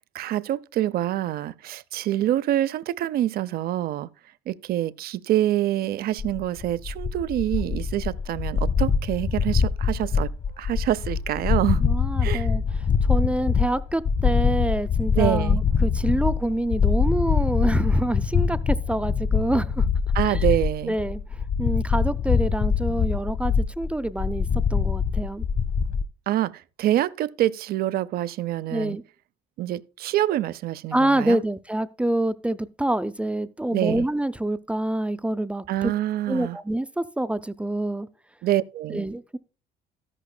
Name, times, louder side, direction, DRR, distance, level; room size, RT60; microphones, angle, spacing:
voice 1, 0.1-4.1 4.5-10.3 10.6-11.8 12.2-12.5 15.1-15.6 20.1-21.0 26.3-26.5 26.8-29.0 29.6-31.4 33.7-34.1 35.7-36.6 38.4-39.0, right 13 dB, 65° right, 0.6 m, -26 dB
sound 1, 6.2-26.0, left 6 dB, 50° left, 1.4 m, -24 dB
voice 2, 11.8-12.6 13.1-18.6 18.9-19.9 20.3-20.4 20.9-21.2 21.6-25.4 28.7-29.0 30.9-35.9 36.3-38.1 38.9-39.4, right 1 dB, 5° right, 0.5 m, -26 dB
13.5 x 11.0 x 2.2 m
cardioid pair, 110°, 17 cm